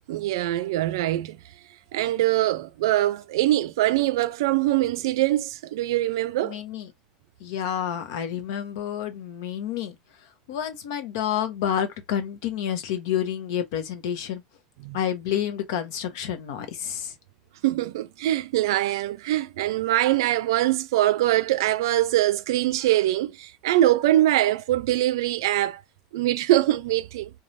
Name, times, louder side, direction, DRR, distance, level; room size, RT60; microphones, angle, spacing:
voice 1, 0.1-1.4 1.9-6.6 14.8-15.0 17.6-25.8 26.1-27.3, right 14 dB, 80° right, 0.4 m, -23 dB
voice 2, 6.4-6.9 7.4-9.9 10.5-14.4 14.9-17.1, left 9 dB, 70° left, 0.8 m, -29 dB
3.1 x 2.3 x 2.6 m
supercardioid pair, 145°, 2 cm